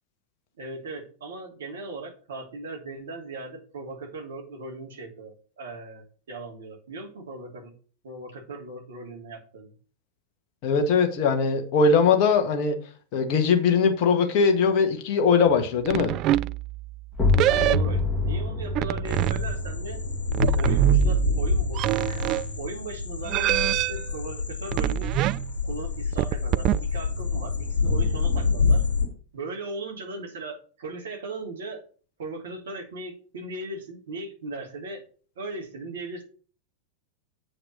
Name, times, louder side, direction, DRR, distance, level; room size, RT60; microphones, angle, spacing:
voice 1, 0.6-7.7 8.0-9.7 17.4-20.0 20.5-22.3 22.6-25.1 25.6-28.8 29.3-31.8 32.2-35.0 35.4-36.2, right 2 dB, 60° right, 2.7 m, -38 dB
voice 2, 10.6-12.8 13.1-16.1, left 5 dB, 45° left, 1.7 m, -21 dB
sound 1, 15.9-17.0 17.3-18.2 18.7-19.8 20.3-22.5 23.2-24.0 24.7-25.6 26.1-26.9, right 14 dB, 35° right, 0.3 m, -25 dB
sound 2, 17.1-22.7, left 3 dB, 15° left, 2.2 m, -28 dB
sound 3, 19.1-29.1, left 4 dB, 75° left, 2.4 m, -27 dB
8.1 x 4.9 x 6.2 m
figure-of-eight pair, 90°, 0 cm